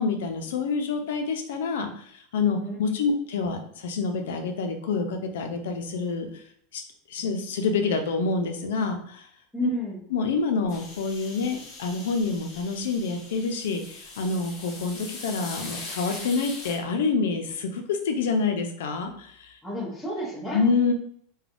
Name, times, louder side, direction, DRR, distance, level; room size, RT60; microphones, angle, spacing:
voice 1, 0.0-6.4 6.7-6.8 7.1-9.2 9.6-9.7 10.1-19.6 20.5-20.9, left 4 dB, 85° left, 5 dB, 0.5 m, -27 dB
voice 2, 9.5-10.0 19.6-20.7, right 2 dB, ahead, -12 dB, 0.8 m, -31 dB
sound 1, 10.7-16.8, left 2 dB, 35° left, 0.9 m, -41 dB
3.3 x 2.2 x 2.5 m, 0.63 s
supercardioid pair, 165°, 0 cm